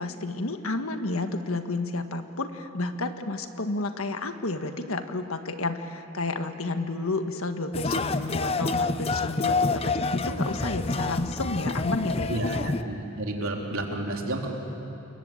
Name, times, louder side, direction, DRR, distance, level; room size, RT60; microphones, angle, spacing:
voice 1, 0.0-12.7, left 2 dB, 75° left, 7 dB, 1.5 m, -31 dB
sound 1, 7.7-12.8, left 3 dB, 25° left, 0.6 m, -28 dB
voice 2, 12.3-14.5, right 1 dB, 75° right, 0 dB, 3.5 m, -31 dB
28.5 x 22.0 x 8.7 m, 2.8 s
head